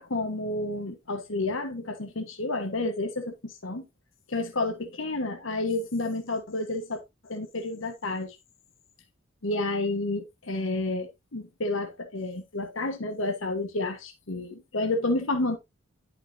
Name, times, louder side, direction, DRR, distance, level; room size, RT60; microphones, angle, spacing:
voice 1, 0.0-3.9 4.3-8.4 9.4-15.6, left 2 dB, 70° left, 1.3 m, -30 dB
11.0 x 5.8 x 2.7 m
head